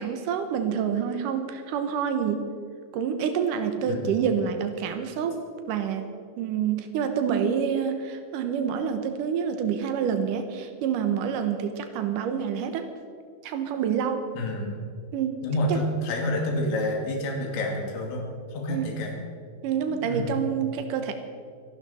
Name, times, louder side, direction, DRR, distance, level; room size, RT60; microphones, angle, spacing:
voice 1, 0.0-2.5 2.9-5.4 5.7-6.1 6.4-12.9 13.4-14.3 15.1-15.4 15.7-15.8 18.7-18.9 19.6-21.1, right 7 dB, 85° right, 7 dB, 1.8 m, -27 dB
voice 2, 3.9-4.3 14.4-14.8 15.4-18.2 18.5-19.1 20.0-20.4, left 1 dB, 85° left, 0 dB, 4.7 m, -28 dB
25.5 x 11.5 x 4.3 m, 2.3 s
omnidirectional pair, 5.2 m